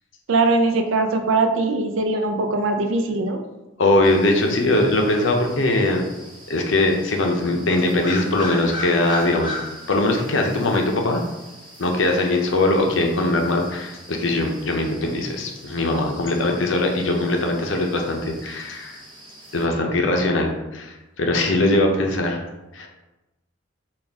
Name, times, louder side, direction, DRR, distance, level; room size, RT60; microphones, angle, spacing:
voice 1, 0.3-3.4, right 3 dB, 80° right, 5 dB, 0.5 m, -21 dB
voice 2, 3.8-6.0 6.5-9.5 9.9-11.2 11.8-19.0 19.5-22.4 22.7-22.9, left 2 dB, 70° left, 2 dB, 0.6 m, -21 dB
sound 1, 4.0-19.7, left 1 dB, 25° right, 0.9 m, -39 dB
3.9 x 2.4 x 3.4 m, 1.0 s
head